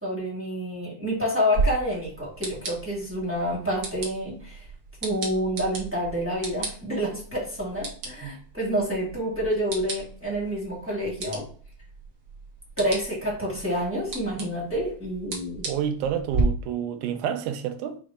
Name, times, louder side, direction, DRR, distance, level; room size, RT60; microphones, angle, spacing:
voice 1, 0.0-4.6 5.0-11.4 12.8-15.6, equal, 10° right, 0.8 m, -28 dB
sound 1, 1.5-16.4, right 3 dB, 65° right, 1.1 m, -36 dB
voice 2, 15.7-18.0, right 9 dB, 85° right, 2.0 m, -29 dB
5.2 x 2.0 x 4.8 m
omnidirectional pair, 3.5 m